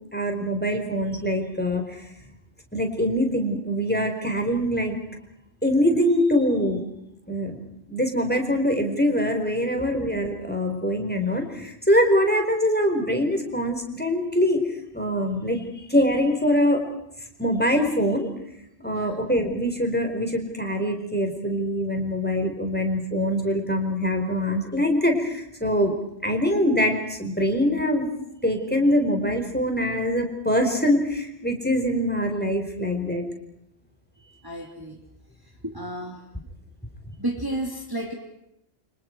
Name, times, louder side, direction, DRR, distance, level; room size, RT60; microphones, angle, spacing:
voice 1, 0.0-2.0 2.7-5.0 5.6-6.8 7.3-7.5 7.9-14.6 14.9-16.8 17.4-18.3 18.8-25.9 26.2-28.1 28.4-33.2, equal, 10° left, 4 dB, 4.6 m, -23 dB
voice 2, 18.8-19.2 25.8-25.9 34.4-35.0 35.6-36.2 37.2-38.1, right 1 dB, 20° right, 1 dB, 3.0 m, -32 dB
29.5 x 26.5 x 4.7 m, 0.78 s
omnidirectional pair, 1.1 m